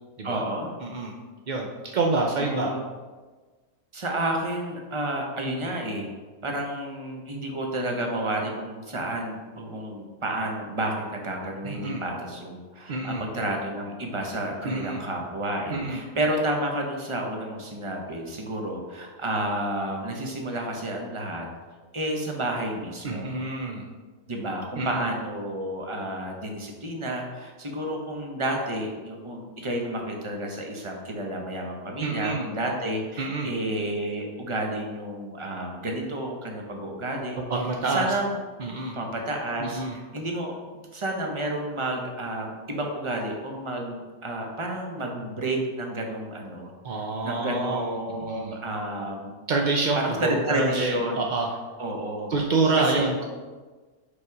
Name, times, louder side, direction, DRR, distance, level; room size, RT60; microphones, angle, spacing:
voice 1, 0.2-0.7 2.3-2.8 3.9-6.1 6.4-21.5 21.9-23.3 24.3-37.4 37.9-38.3 38.9-49.3 50.0-51.2 51.8-52.3 52.7-53.1, right 1 dB, 25° right, 1 dB, 0.8 m, -31 dB
voice 2, 0.8-1.1 1.5-2.7 11.6-12.0 12.9-13.2 14.6-15.0 15.7-16.0 23.0-23.8 24.8-25.1 32.0-32.5 33.2-33.5 37.5-38.1 38.6-38.9 39.6-39.9 46.8-48.6 49.5-51.5 52.3-53.2, right 3 dB, 65° right, 1 dB, 0.4 m, -27 dB
5.2 x 5.1 x 4.6 m, 1.3 s
omnidirectional pair, 1.5 m